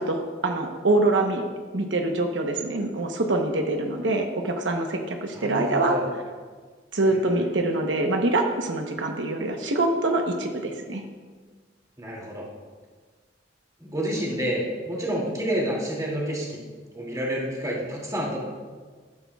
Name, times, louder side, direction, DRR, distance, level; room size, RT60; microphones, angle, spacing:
voice 1, 0.0-1.4 1.7-6.0 6.9-11.0, right 2 dB, 90° right, 3 dB, 1.0 m, -25 dB
voice 2, 5.3-6.1 12.0-12.5 13.8-16.6 16.9-18.4, equal, 20° right, -4 dB, 2.6 m, -29 dB
14.5 x 12.0 x 2.4 m, 1.5 s
head